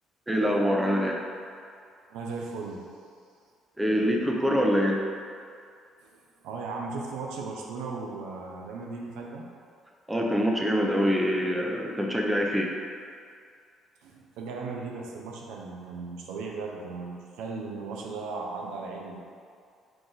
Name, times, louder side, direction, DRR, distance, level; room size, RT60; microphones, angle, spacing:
voice 1, 0.3-1.2 3.8-5.0 10.1-12.7, equal, 10° right, 0 dB, 0.6 m, -25 dB
voice 2, 2.1-2.8 6.0-9.5 14.0-19.2, right 4 dB, 85° right, -1 dB, 0.5 m, -37 dB
4.7 x 2.5 x 3.9 m, 2.3 s
supercardioid pair, 80°, 0 cm